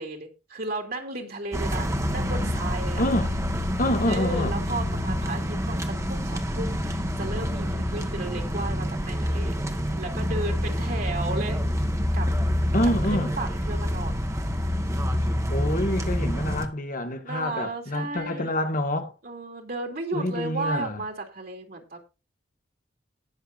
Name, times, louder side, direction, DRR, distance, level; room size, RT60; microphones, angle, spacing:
voice 1, 0.0-3.0 4.0-9.6 10.0-11.6 12.1-12.3 12.8-14.2 17.2-18.5 19.2-22.0, right 2 dB, 55° right, 2.8 m, -34 dB
sound 1, 1.5-16.7, equal, 15° right, 1.3 m, -27 dB
voice 2, 3.0-3.3 3.8-4.6 12.7-13.3 15.5-19.1 20.1-21.0, left 1 dB, 45° left, 1.7 m, -27 dB
19.0 x 6.8 x 2.6 m
head